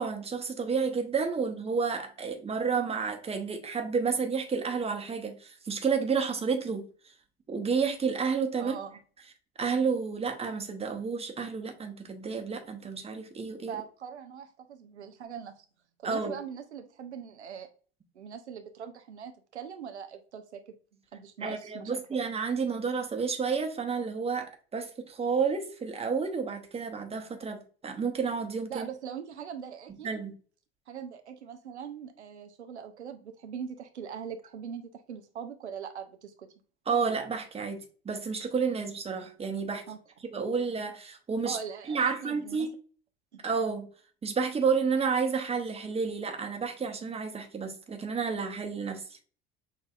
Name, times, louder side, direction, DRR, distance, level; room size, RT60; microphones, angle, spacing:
voice 1, 0.0-6.8 7.5-8.8 9.6-13.8 16.0-16.3 21.4-28.9 30.0-30.3 36.9-39.8 40.2-41.6 41.9-42.7 43.4-43.9 44.2-49.2, right 5 dB, 20° right, 0.9 m, -30 dB
voice 2, 8.6-9.0 13.7-15.6 16.0-17.7 18.2-21.9 28.7-30.1 30.9-36.5 39.9-40.0 41.4-42.7 43.3-43.4, right 7 dB, 85° right, 0.5 m, -41 dB
6.4 x 2.6 x 2.4 m
figure-of-eight pair, 70°, 33 cm